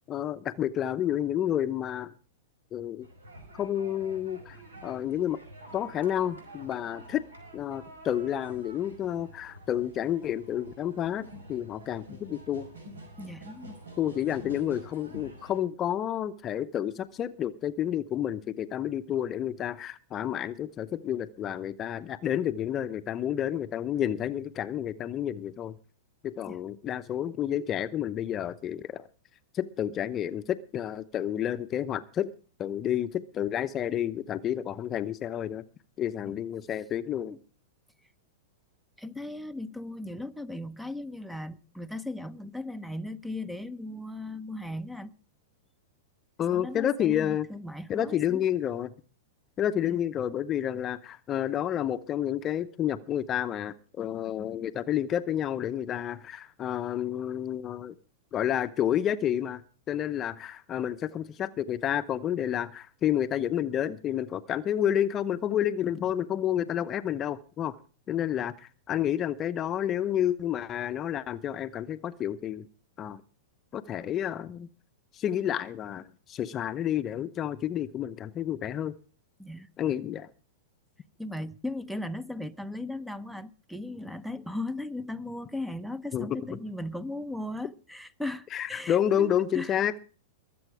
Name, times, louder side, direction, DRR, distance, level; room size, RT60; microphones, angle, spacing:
voice 1, 0.1-2.1 2.7-3.1 3.5-4.6 4.8-5.4 5.7-7.2 7.5-12.7 14.0-25.8 26.2-29.1 29.5-32.3 32.6-35.6 36.0-37.3 46.4-47.5 47.9-48.9 49.6-57.9 58.3-59.6 59.9-67.8 68.1-72.7 73.0-73.2 73.7-74.7 75.1-79.0 79.8-80.3 86.1-86.6 88.5-90.0, left 10 dB, 30° left, 0.8 m, -30 dB
sound 1, 3.0-15.6, right 1 dB, 80° right, 5.2 m, -48 dB
voice 2, 13.2-13.8 26.4-26.6 36.2-36.3 37.3-37.4 39.0-45.1 46.5-48.5 49.8-50.0 79.4-79.7 81.2-89.8, left 1 dB, ahead, 0.8 m, -37 dB
22.5 x 7.8 x 4.9 m
figure-of-eight pair, 100°, 0 cm